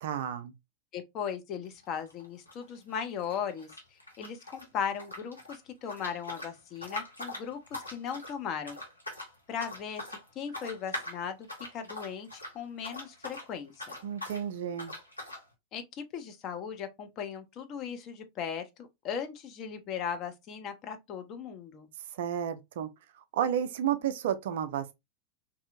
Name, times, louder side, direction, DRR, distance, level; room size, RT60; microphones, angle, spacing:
voice 1, 0.0-0.5 14.0-14.9 22.1-22.9 23.1-24.9, right 9 dB, 55° right, 0.3 m, -32 dB
voice 2, 0.9-3.7 4.2-8.8 9.5-11.5 11.7-13.9 15.7-21.9, left 7 dB, 35° left, 0.5 m, -37 dB
sound 1, 1.6-4.7 4.9-13.5 13.7-14.4 14.8-15.4, left 1 dB, 85° left, 0.7 m, -42 dB
2.6 x 2.4 x 2.4 m
figure-of-eight pair, 90°, 0 cm